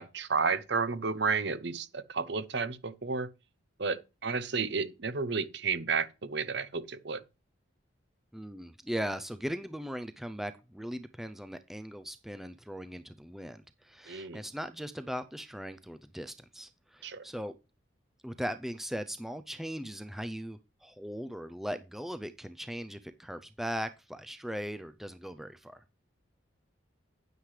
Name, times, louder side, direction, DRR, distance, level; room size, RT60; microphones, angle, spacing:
voice 1, 0.0-3.3 3.8-7.2 14.1-14.4 17.0-17.2, right 5 dB, 55° right, 0.8 m, -32 dB
voice 2, 8.3-17.5 18.2-25.8, equal, ahead, 0.4 m, -39 dB
9.8 x 9.2 x 3.2 m
head